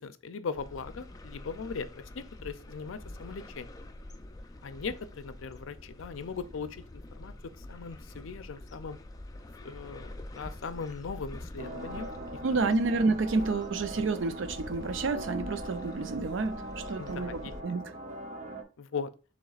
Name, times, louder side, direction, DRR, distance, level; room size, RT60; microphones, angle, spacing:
voice 1, 0.0-3.7 4.6-9.0 9.6-12.1 12.5-12.7 17.0-17.5 18.8-19.1, left 5 dB, 80° left, 0.5 m, -39 dB
sound 1, 0.5-17.6, left 1 dB, 20° left, 0.4 m, -46 dB
sound 2, 11.6-18.6, right 1 dB, 35° right, 0.7 m, -41 dB
voice 2, 12.4-17.8, right 3 dB, 70° right, 0.5 m, -29 dB
7.0 x 3.0 x 2.4 m
head